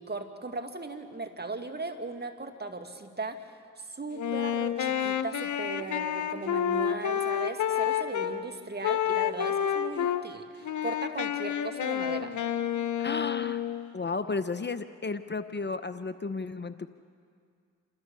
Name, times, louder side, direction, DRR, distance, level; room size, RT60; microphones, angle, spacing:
voice 1, 0.0-3.5 3.8-12.3, right 3 dB, 30° right, 5 dB, 2.2 m, -38 dB
Wind instrument woodwind instrument, 4.1-8.3 8.8-10.2 10.6-13.9, left 10 dB, 70° left, 1.1 m, -29 dB
voice 2, 13.0-13.6 13.9-16.9, left 4 dB, 35° left, 11 dB, 0.9 m, -33 dB
28.5 x 14.0 x 7.0 m, 2.2 s
supercardioid pair, 45°, 31 cm